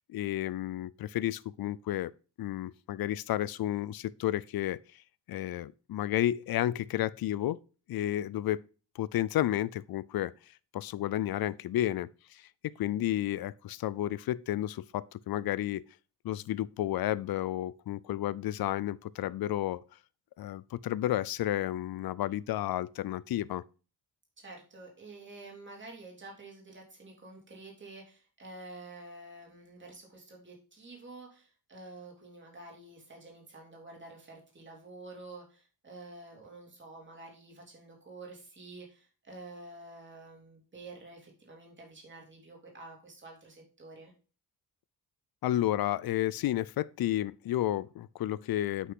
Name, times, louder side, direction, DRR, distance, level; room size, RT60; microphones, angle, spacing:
voice 1, 0.1-2.1 2.4-4.8 5.3-7.6 7.9-8.6 9.0-10.3 10.7-15.8 16.2-19.8 20.4-23.6 45.4-48.9, left 13 dB, 65° left, 0.5 m, -31 dB
voice 2, 24.4-44.1, right 2 dB, 30° right, 3.0 m, -49 dB
8.4 x 6.0 x 3.7 m
wide cardioid pair, 155°, 40 cm